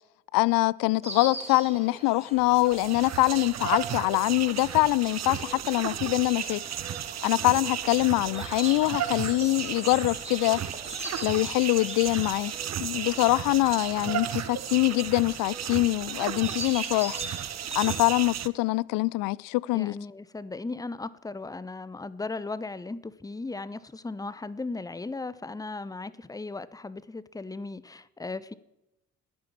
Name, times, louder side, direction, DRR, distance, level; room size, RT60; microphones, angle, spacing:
voice 1, 0.3-6.6 7.2-10.6 11.2-12.5 12.8-17.2 17.7-20.0, left 21 dB, 60° left, 0.5 m, -24 dB
Insect, 1.0-18.0, right 2 dB, 15° right, 2.9 m, -43 dB
sound 1, 2.4-18.5, right 10 dB, 45° right, 0.8 m, -34 dB
voice 2, 19.7-28.5, left 3 dB, 10° left, 0.7 m, -37 dB
10.5 x 9.8 x 7.3 m
hypercardioid pair, 45°, 38 cm